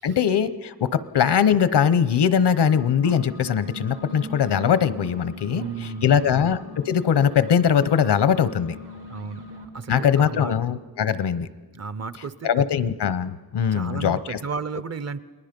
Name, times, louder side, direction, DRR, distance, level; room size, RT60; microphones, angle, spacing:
voice 1, 0.0-5.6 6.0-8.8 9.9-11.5 12.4-14.4, left 8 dB, 90° left, 15 dB, 0.9 m, -21 dB
sound 1, 2.5-9.7, left 1 dB, 80° right, 2.6 m, -41 dB
voice 2, 5.5-6.3 9.1-10.5 11.7-12.7 13.7-15.2, right 5 dB, 40° right, 15 dB, 0.6 m, -33 dB
29.5 x 20.5 x 5.2 m, 1.3 s
wide cardioid pair, 160°, 39 cm